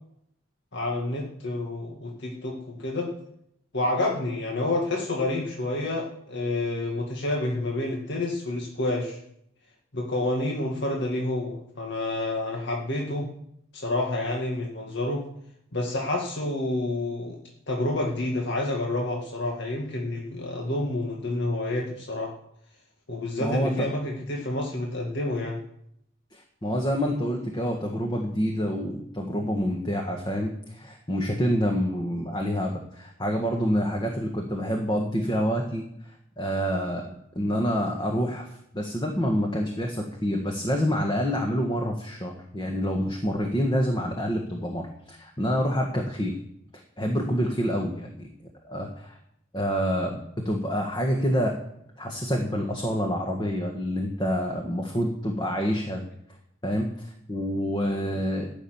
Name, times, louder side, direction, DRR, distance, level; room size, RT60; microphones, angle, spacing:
voice 1, 0.7-3.1 3.7-9.2 9.9-13.3 13.7-15.2 15.7-17.4 17.7-22.3 23.1-25.6 57.8-58.0 58.3-58.4, left 2 dB, 60° left, -1 dB, 2.0 m, -29 dB
voice 2, 23.4-23.9 26.3-35.8 36.4-46.4 47.0-48.3 48.7-49.2 49.5-51.5 52.0-56.0 56.6-58.5, equal, 20° left, 2 dB, 1.6 m, -27 dB
14.5 x 7.2 x 9.3 m, 0.75 s
head